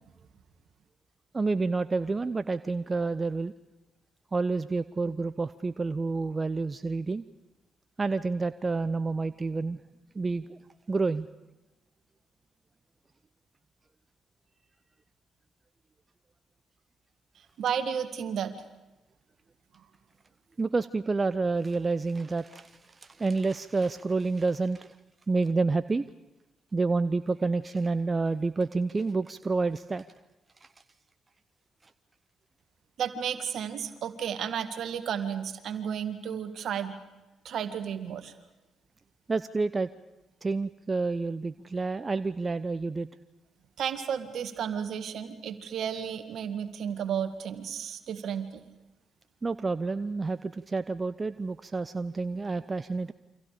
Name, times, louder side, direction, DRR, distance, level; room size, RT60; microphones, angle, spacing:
voice 1, 1.3-3.5 4.3-7.2 8.0-9.8 10.1-10.6 10.9-11.3 20.6-25.0 25.3-26.0 26.7-30.0 30.6-30.7 39.3-39.9 40.4-43.1 49.4-53.1, right 3 dB, 35° right, 13 dB, 0.7 m, -29 dB
voice 2, 17.6-18.5 33.0-36.9 37.4-38.3 43.8-48.6, right 8 dB, 65° right, 8 dB, 1.9 m, -33 dB
28.5 x 25.5 x 5.1 m, 1.1 s
hypercardioid pair, 45°, 0 cm